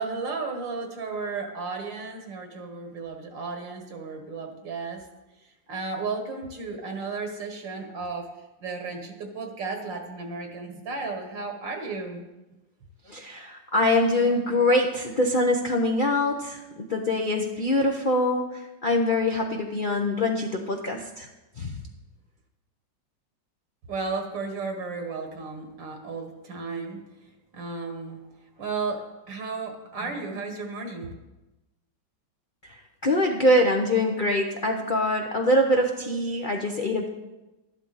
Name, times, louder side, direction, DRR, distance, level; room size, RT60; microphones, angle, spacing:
voice 1, 0.0-5.0 5.7-8.3 8.6-12.2 23.9-27.0 27.5-28.2 28.6-31.1, right 4 dB, 75° right, 4 dB, 2.1 m, -34 dB
voice 2, 13.1-21.3 21.6-21.7 32.7-37.1, left 1 dB, 40° left, 1 dB, 0.7 m, -24 dB
13.0 x 11.0 x 4.1 m, 1.0 s
omnidirectional pair, 2.0 m